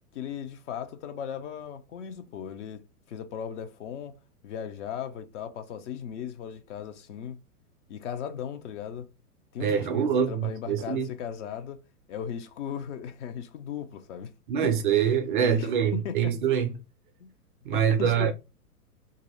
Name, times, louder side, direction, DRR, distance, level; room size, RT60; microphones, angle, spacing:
voice 1, 0.1-4.2 4.4-7.4 7.9-9.1 9.5-11.8 12.1-14.3 14.6-14.9 15.4-16.3 17.2-17.3 17.7-18.3, left 8 dB, 50° left, 0.7 m, -37 dB
voice 2, 9.6-11.1 14.5-16.7 17.6-18.3, right 8 dB, 35° right, 0.4 m, -25 dB
3.0 x 2.7 x 3.9 m
figure-of-eight pair, 105°, 46 cm